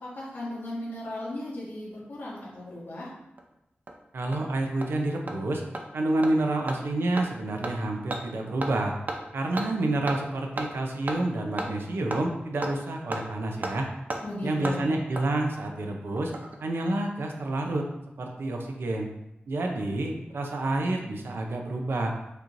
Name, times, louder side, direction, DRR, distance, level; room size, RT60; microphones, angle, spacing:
voice 1, 0.0-3.1 14.2-15.0, left 1 dB, 75° left, -8 dB, 1.5 m, -36 dB
Hammer, 3.4-3.5 3.9-4.0 4.3-4.4 4.8-4.9 5.3-5.4 5.7-5.8 6.2-6.3 6.7-6.8 7.2-7.3 7.6-7.7 8.1-8.2 8.6-8.7 9.1-9.2 9.6-9.7 10.1-10.2 10.6-10.7 11.1-11.2 11.6-11.7 12.1-12.2 12.6-12.7 13.1-13.2 13.6-13.7 14.1-14.2 14.6-14.8 15.2-15.3 16.2-16.6 16.8-16.9, right 2 dB, 50° right, 0.5 m, -32 dB
voice 2, 4.1-5.6 5.9-8.9 9.3-13.9 14.4-16.3 16.6-17.9 18.2-19.1 19.5-22.1, right 2 dB, 90° right, 2 dB, 0.6 m, -28 dB
6.5 x 3.0 x 2.6 m, 0.87 s
wide cardioid pair, 75°, 4 cm